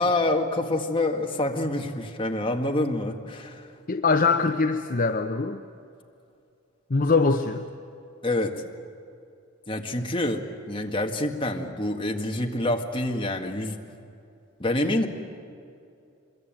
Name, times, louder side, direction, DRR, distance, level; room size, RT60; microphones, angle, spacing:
voice 1, 0.0-3.7 8.2-8.5 9.7-13.8 14.6-15.1, left 1 dB, 25° left, 2 dB, 1.8 m, -27 dB
voice 2, 3.9-5.6 6.9-7.7, left 4 dB, 40° left, 7 dB, 0.7 m, -23 dB
25.0 x 22.5 x 9.0 m, 2.5 s
head